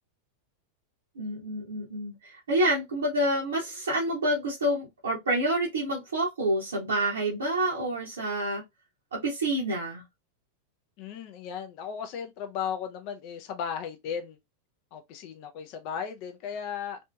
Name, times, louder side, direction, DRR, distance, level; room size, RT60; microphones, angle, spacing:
voice 1, 1.2-8.6 9.1-10.0, right 1 dB, 65° right, 0.7 m, -28 dB
voice 2, 11.0-14.4 14.9-17.0, left 7 dB, 45° left, 0.4 m, -36 dB
2.8 x 2.6 x 2.2 m
figure-of-eight pair, 90°, 0 cm